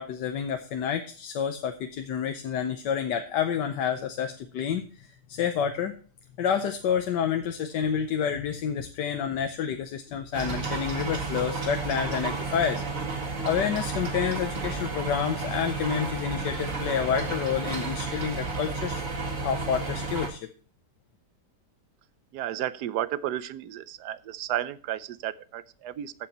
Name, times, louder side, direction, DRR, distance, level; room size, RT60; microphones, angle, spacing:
voice 1, 0.0-5.9 6.4-12.8 13.4-19.1 19.4-20.5, left 8 dB, 85° left, 7 dB, 1.4 m, -29 dB
sound 1, 10.3-20.3, right 3 dB, 50° right, 2.3 m, -32 dB
voice 2, 22.3-26.1, right 12 dB, 75° right, 16 dB, 1.1 m, -32 dB
14.5 x 5.6 x 4.2 m, 0.43 s
omnidirectional pair, 1.8 m